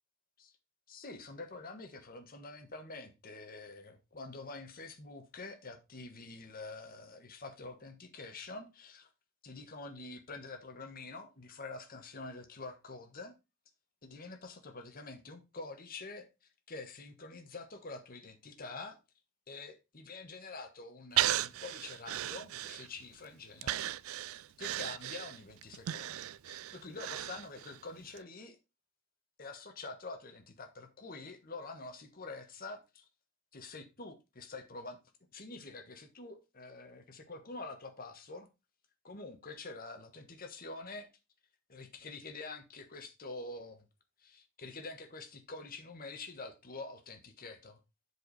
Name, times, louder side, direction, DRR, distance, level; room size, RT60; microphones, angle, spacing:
voice 1, 0.9-9.1 9.4-13.3 14.0-16.3 16.7-19.0 19.5-23.8 24.2-28.6 29.4-33.0 33.5-35.0 35.3-38.5 39.0-41.1 41.7-43.9 44.2-47.8, left 3 dB, 45° left, 1.4 m, -46 dB
Breathing, 21.2-23.1 23.6-27.8 28.2-28.3, right 13 dB, 75° right, 0.4 m, -35 dB
7.8 x 4.8 x 4.8 m
head